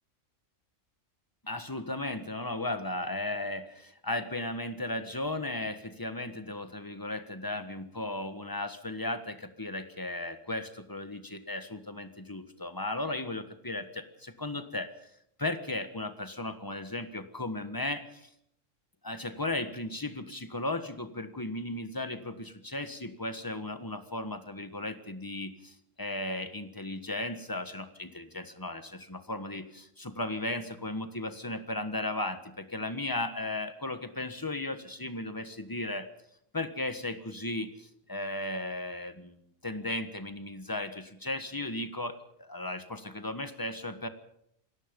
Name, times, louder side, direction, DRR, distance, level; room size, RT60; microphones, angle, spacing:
voice 1, 1.4-14.9 15.4-18.3 19.0-36.1 36.5-44.1, left 2 dB, 15° left, 9 dB, 1.5 m, -36 dB
27.5 x 18.0 x 5.4 m, 0.74 s
omnidirectional pair, 1.3 m